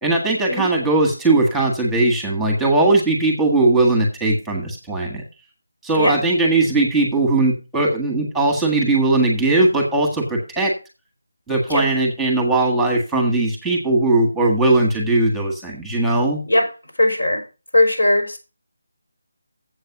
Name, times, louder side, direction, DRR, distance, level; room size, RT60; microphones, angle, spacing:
voice 1, 0.0-5.2 5.8-10.7 11.5-16.4, right 2 dB, ahead, 0 dB, 1.6 m, -19 dB
voice 2, 17.0-17.4 17.7-18.4, left 1 dB, 85° left, 2 dB, 5.0 m, -18 dB
7.9 x 6.4 x 5.9 m, 0.31 s
figure-of-eight pair, 165°, 0 cm